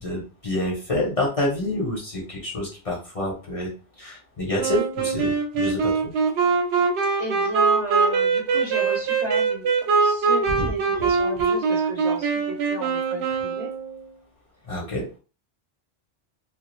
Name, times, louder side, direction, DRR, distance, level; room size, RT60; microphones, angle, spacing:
voice 1, 0.0-3.7 4.0-6.1 10.5-10.7 14.6-15.1, left 1 dB, 35° left, -3 dB, 0.8 m, -27 dB
Wind instrument woodwind instrument, 4.6-14.0, right 5 dB, 80° right, 0.9 m, -22 dB
voice 2, 7.2-9.7 10.0-13.7, right 2 dB, 45° right, -2 dB, 0.7 m, -34 dB
2.2 x 2.2 x 3.0 m, 0.35 s
omnidirectional pair, 1.1 m